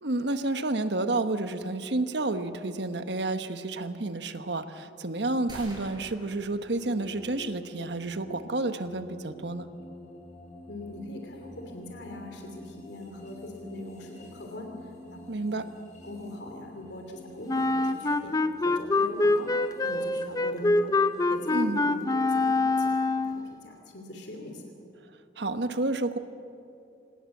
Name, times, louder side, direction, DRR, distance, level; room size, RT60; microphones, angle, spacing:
voice 1, 0.0-9.7 15.3-15.7 21.5-21.8 25.4-26.2, right 2 dB, 70° right, 9 dB, 1.2 m, -30 dB
sound 1, 5.5-7.4, right 1 dB, 25° right, 5.1 m, -47 dB
sound 2, 6.8-21.8, left 1 dB, 40° left, 6.8 m, -49 dB
voice 2, 10.7-15.2 16.0-19.5 19.8-20.9 21.2-24.6, left 1 dB, 75° left, 2 dB, 3.0 m, -41 dB
Wind instrument woodwind instrument, 17.5-23.5, left 2 dB, 20° left, 0.6 m, -25 dB
26.5 x 19.0 x 7.3 m, 2.6 s
head